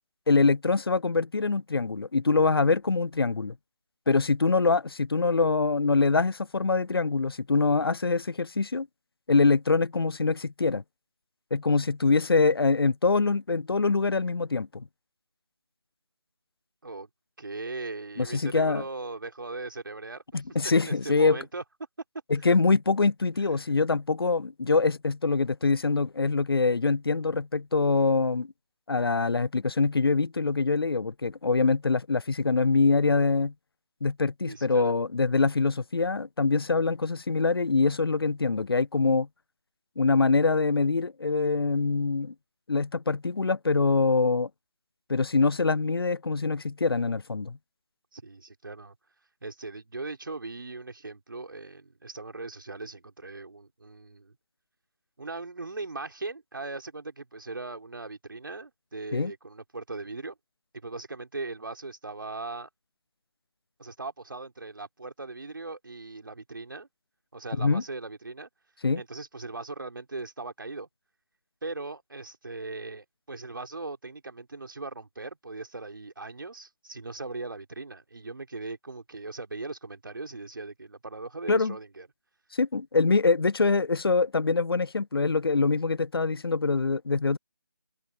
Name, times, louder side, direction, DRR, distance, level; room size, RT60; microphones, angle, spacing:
voice 1, 0.3-3.5 4.1-8.9 9.3-10.8 11.5-14.9 18.2-18.8 20.3-21.4 22.3-28.5 28.9-33.5 34.0-39.3 40.0-42.3 42.7-44.5 45.1-47.6 59.1-59.3 67.6-67.8 68.8-69.0 81.5-81.8 82.5-87.4, left 4 dB, 85° left, 0.5 m, -24 dB
voice 2, 17.4-20.4 20.8-21.6 22.4-22.5 23.4-23.7 34.5-34.9 48.1-49.0 49.4-54.4 55.2-60.4 60.7-62.7 63.8-66.9 67.3-68.5 68.9-70.9 71.6-82.1, right 3 dB, 60° right, 5.3 m, -39 dB
figure-of-eight pair, 165°, 12 cm